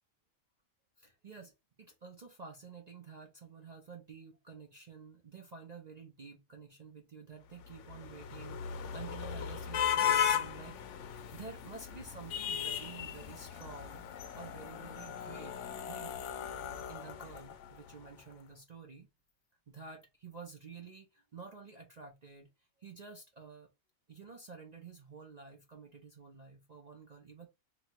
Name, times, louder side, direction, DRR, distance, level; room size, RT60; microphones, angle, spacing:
voice 1, 1.0-14.0 14.3-19.1 19.7-22.5 22.8-23.7 24.1-27.5, right 5 dB, 45° right, 0.6 m, -50 dB
sound 1, 7.6-17.9, left 9 dB, 70° left, 0.8 m, -36 dB
3.1 x 2.7 x 4.3 m
omnidirectional pair, 1.4 m